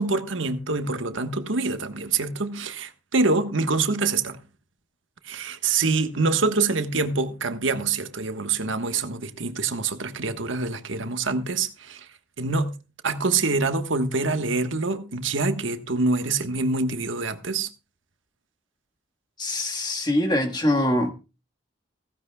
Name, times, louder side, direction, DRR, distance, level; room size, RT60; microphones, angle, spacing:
voice 1, 0.0-4.4 5.3-12.0 12.4-12.7 13.0-17.7, right 3 dB, 80° right, 1.3 m, -25 dB
voice 2, 19.4-21.1, left 1 dB, 20° left, 1.5 m, -23 dB
16.0 x 15.5 x 2.3 m
head